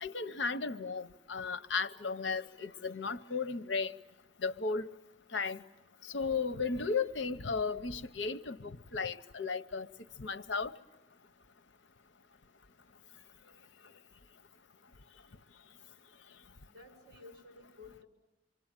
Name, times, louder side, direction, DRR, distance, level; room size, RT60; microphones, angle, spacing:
voice 1, 0.0-3.9 4.4-4.9 5.3-5.6 6.1-9.9 10.2-10.7, left 4 dB, 75° left, 0.9 m, -35 dB
voice 2, 16.7-18.1, left 3 dB, 55° right, 7.6 m, -53 dB
27.0 x 24.0 x 9.0 m
head